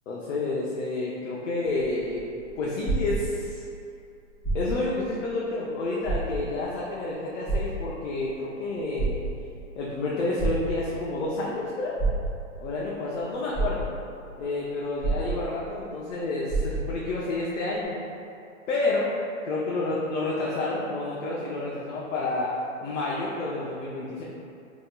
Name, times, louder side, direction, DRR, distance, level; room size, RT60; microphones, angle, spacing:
voice 1, 0.1-2.2 2.6-3.6 4.5-9.2 9.8-12.0 12.6-13.9 14.4-18.0 18.7-19.1 19.4-22.5 22.8-24.2, left 2 dB, 65° left, -5 dB, 0.7 m, -29 dB
sound 1, 1.6-3.7 4.3-5.0 5.4-5.5 6.0-6.7 7.5-8.3 8.8-9.7 10.4-11.1 12.0-12.7 13.2-13.3 13.5-14.3 15.0-15.8 16.1-16.2 16.5-17.1 17.8-17.9, right 3 dB, 10° left, 0.8 m, -29 dB
3.7 x 2.9 x 2.2 m, 2.6 s
hypercardioid pair, 145°, 40 cm